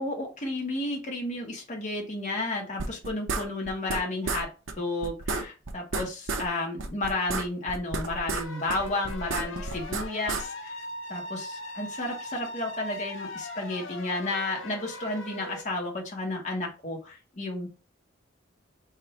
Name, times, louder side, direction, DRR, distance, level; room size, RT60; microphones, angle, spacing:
voice 1, 0.0-4.5 4.8-10.8 11.1-17.7, left 2 dB, 40° left, -1 dB, 1.3 m, -32 dB
sound 1, 2.8-4.0 4.3-4.4 4.7-4.8 5.0-6.5 6.8-8.4 8.7-10.4, right 3 dB, 75° right, 0.7 m, -31 dB
sound 2, 8.3-15.6, left 1 dB, 80° left, 0.8 m, -40 dB
3.7 x 2.6 x 4.3 m, 0.31 s
head